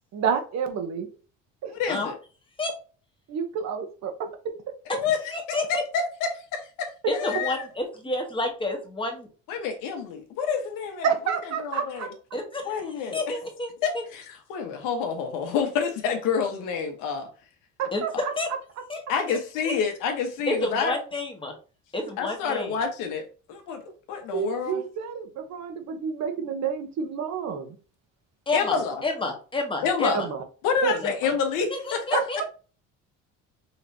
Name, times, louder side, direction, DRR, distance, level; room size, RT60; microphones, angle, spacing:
voice 1, 0.1-1.1 1.6-1.7 3.3-4.5 11.0-12.1 17.8-18.3 24.3-27.8 30.1-30.4 30.8-30.9 32.1-32.4, right 7 dB, 55° right, 1.3 m, -29 dB
voice 2, 1.7-2.1 5.0-7.6 9.5-11.1 11.6-12.1 12.6-13.4 13.8-17.3 19.1-20.9 22.2-23.2 23.5-23.8 24.1-24.8 28.5-29.0 29.8-30.2 30.6-32.2, left 6 dB, 80° left, 1.4 m, -28 dB
voice 3, 5.3-5.8 7.1-9.3 12.3-12.7 13.1-14.0 17.9-18.5 18.9-19.0 19.3-19.4 19.6-19.7 20.5-21.5 21.9-22.7 28.5-30.3 31.0-31.1 31.7-32.4, left 2 dB, 15° left, 1.5 m, -30 dB
5.6 x 3.3 x 2.8 m
cardioid pair, 120°, 32 cm